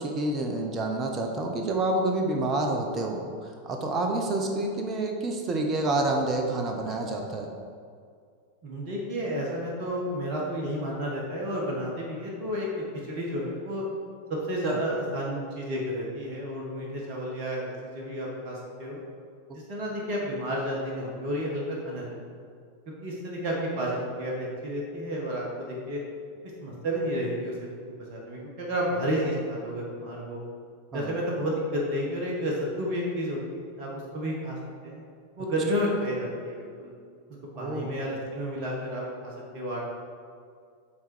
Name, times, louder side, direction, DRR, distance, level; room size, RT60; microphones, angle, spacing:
voice 1, 0.0-7.5 14.6-14.8 30.9-31.1 37.5-37.9, right 2 dB, 25° right, 3 dB, 0.8 m, -28 dB
voice 2, 8.6-13.8 14.3-19.0 19.5-22.4 23.0-26.0 26.6-27.5 27.8-30.4 30.9-34.6 34.8-35.0 35.4-36.9 37.6-39.8, equal, 45° right, -2 dB, 1.3 m, -31 dB
8.4 x 3.8 x 4.5 m, 2.2 s
figure-of-eight pair, 90°, 0 cm